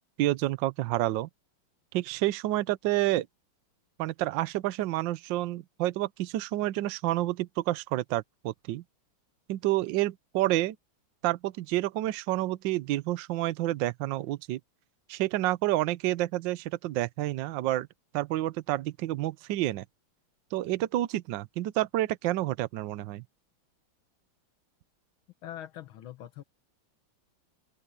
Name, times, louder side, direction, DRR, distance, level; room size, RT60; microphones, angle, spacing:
voice 1, 0.2-1.3 1.9-3.3 4.0-8.8 9.5-10.8 11.2-14.6 15.1-17.9 18.1-19.8 20.5-23.2, right 15 dB, 70° right, 1.3 m, -29 dB
voice 2, 25.4-26.4, left 11 dB, 90° left, 1.9 m, -42 dB
open air
omnidirectional pair, 2.2 m